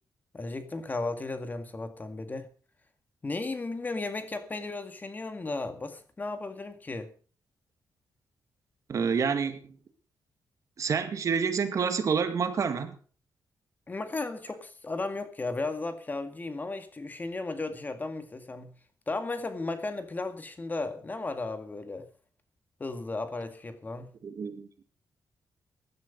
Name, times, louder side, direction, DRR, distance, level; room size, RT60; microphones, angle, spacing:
voice 1, 0.3-2.5 3.2-7.1 13.9-18.7 19.1-22.1 22.8-24.1, left 3 dB, 25° left, 2.0 m, -35 dB
voice 2, 8.9-9.7 10.8-13.0 24.2-24.7, right 6 dB, 55° right, 2.0 m, -28 dB
16.0 x 11.0 x 5.3 m
cardioid pair, 110°, 7 cm